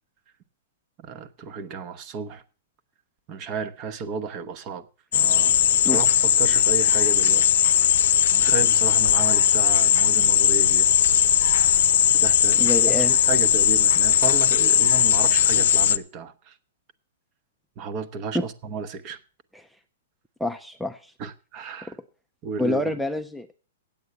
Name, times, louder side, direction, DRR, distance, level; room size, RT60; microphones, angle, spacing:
voice 1, 1.0-2.4 3.3-4.8 5.1-5.5 5.9-6.1 6.4-7.6 8.3-10.9 12.1-12.6 12.9-16.5 17.8-19.2 21.2-21.9 22.4-22.9, right 5 dB, 35° right, 0.9 m, -33 dB
sound 1, 5.1-16.0, left 10 dB, 75° left, 0.6 m, -19 dB
voice 2, 12.6-13.2 18.3-18.5 19.5-19.7 20.4-21.1 21.9-22.0 22.6-23.5, left 1 dB, ahead, 0.5 m, -27 dB
8.7 x 7.9 x 7.9 m
hypercardioid pair, 145°, 0 cm